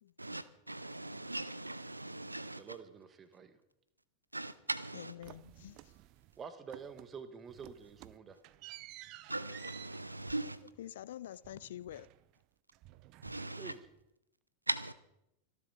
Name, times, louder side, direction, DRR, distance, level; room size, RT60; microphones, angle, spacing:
voice 1, 0.2-2.6 4.3-5.1 9.3-10.6 13.2-13.7 14.7-14.9, right 2 dB, 85° right, 0.7 m, -39 dB
voice 2, 2.6-3.5 6.4-8.4 13.6-13.8, right 6 dB, 20° right, 1.5 m, -48 dB
voice 3, 4.9-5.9 10.8-12.1, left 12 dB, 60° left, 0.5 m, -47 dB
sound 1, 5.2-6.4 6.7-7.2 7.5-12.4 12.7-14.0, right 16 dB, 40° right, 0.6 m, -54 dB
25.5 x 11.0 x 4.3 m
figure-of-eight pair, 90°, 0 cm